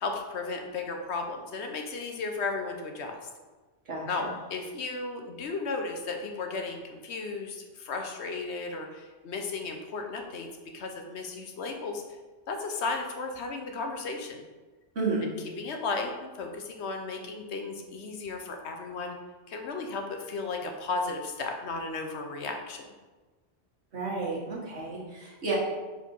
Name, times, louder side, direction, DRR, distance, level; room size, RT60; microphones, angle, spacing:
voice 1, 0.0-3.2 4.1-10.5 10.7-12.0 12.5-14.4 15.2-15.3 15.6-19.2 19.5-22.9, left 3 dB, 65° left, 4 dB, 1.0 m, -34 dB
voice 2, 3.9-4.3 14.9-15.3 23.9-25.5, right 3 dB, 65° right, -4 dB, 1.7 m, -32 dB
5.0 x 3.9 x 5.2 m, 1.3 s
omnidirectional pair, 1.2 m